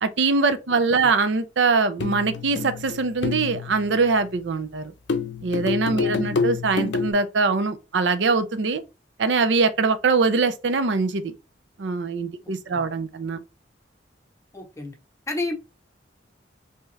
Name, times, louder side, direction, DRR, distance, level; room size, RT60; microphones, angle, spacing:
voice 1, 0.0-4.9 5.4-8.8 9.2-11.3 11.8-13.4, right 4 dB, 70° right, 0.5 m, -22 dB
voice 2, 0.7-1.1 6.0-6.5 12.4-12.8 14.5-14.9 15.3-15.6, left 2 dB, 15° left, 0.8 m, -33 dB
sound 1, 2.0-4.4 5.1-7.1, left 5 dB, 65° left, 0.5 m, -28 dB
3.4 x 2.9 x 3.2 m
head